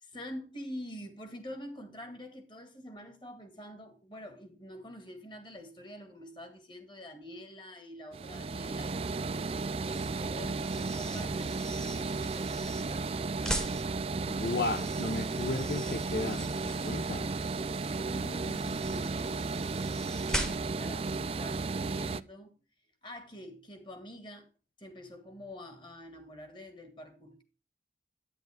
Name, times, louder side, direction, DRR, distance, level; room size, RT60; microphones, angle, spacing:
voice 1, 0.0-13.1 16.8-17.0 18.1-22.6 23.0-24.5 24.8-27.4, equal, 25° left, 2.0 m, -46 dB
sound 1, 8.1-22.2, right 4 dB, 35° right, 0.4 m, -34 dB
sound 2, 9.8-20.9, equal, 5° left, 1.1 m, -42 dB
voice 2, 14.3-17.4, left 2 dB, 55° left, 0.8 m, -34 dB
9.9 x 9.4 x 3.4 m
head